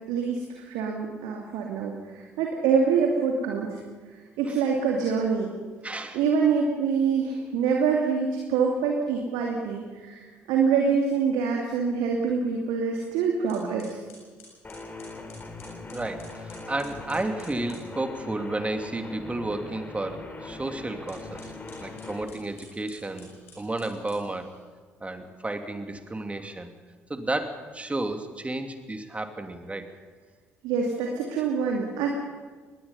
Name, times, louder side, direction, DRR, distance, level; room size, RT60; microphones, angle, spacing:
voice 1, 0.1-3.8 4.4-5.5 6.1-14.0 30.6-32.1, right 5 dB, 70° right, 0 dB, 2.6 m, -25 dB
voice 2, 5.8-6.2 15.9-21.5 21.8-23.3 23.6-24.5 25.0-26.7 27.1-29.9, right 2 dB, 20° right, 6 dB, 2.6 m, -32 dB
sound 1, 13.5-17.9 21.0-24.6, left 3 dB, 80° left, 8.0 m, -52 dB
sound 2, 14.6-22.3, left 3 dB, 25° left, 3.4 m, -41 dB
24.0 x 20.0 x 5.6 m, 1.4 s
figure-of-eight pair, 50°, 7 cm